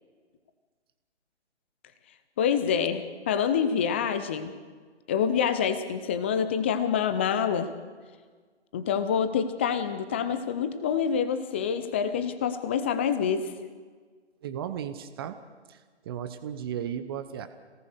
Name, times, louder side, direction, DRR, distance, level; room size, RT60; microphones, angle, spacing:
voice 1, 2.4-4.5 5.1-7.7 8.7-13.5, left 7 dB, 10° left, 11 dB, 0.6 m, -26 dB
voice 2, 14.4-15.4 15.7-17.5, right 9 dB, 20° right, 10 dB, 0.9 m, -35 dB
28.0 x 18.0 x 6.6 m, 1.5 s
figure-of-eight pair, 140°, 35 cm